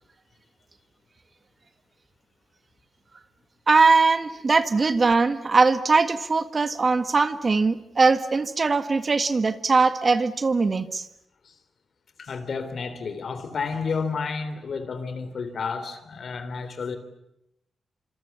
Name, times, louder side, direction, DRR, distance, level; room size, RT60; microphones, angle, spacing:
voice 1, 3.7-11.0, right 4 dB, 40° right, 11 dB, 1.7 m, -21 dB
voice 2, 12.2-17.0, left 5 dB, 60° left, 11 dB, 3.5 m, -31 dB
26.5 x 26.5 x 8.4 m, 0.83 s
cardioid pair, 95°, 0 cm